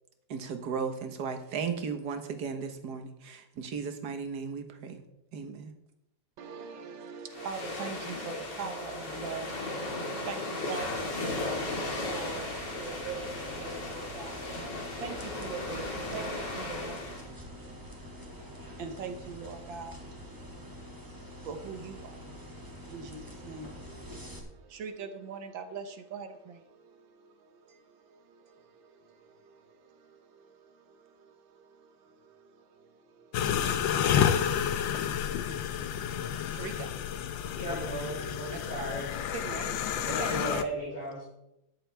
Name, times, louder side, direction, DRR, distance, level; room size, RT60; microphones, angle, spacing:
voice 1, 0.3-5.0 5.3-5.7, right 6 dB, 60° right, 1.7 m, -36 dB
voice 2, 6.4-37.6 38.5-38.7 39.3-40.7, right 5 dB, 85° right, 1.8 m, -44 dB
sound 1, 7.3-17.3, left 2 dB, 65° left, 2.9 m, -36 dB
sound 2, 10.8-24.4, equal, 10° right, 1.7 m, -46 dB
sound 3, 33.3-40.6, left 9 dB, 80° left, 1.5 m, -30 dB
voice 3, 37.5-39.1 39.9-41.2, right 1 dB, 45° left, 4.9 m, -36 dB
13.0 x 10.0 x 3.4 m
omnidirectional pair, 2.0 m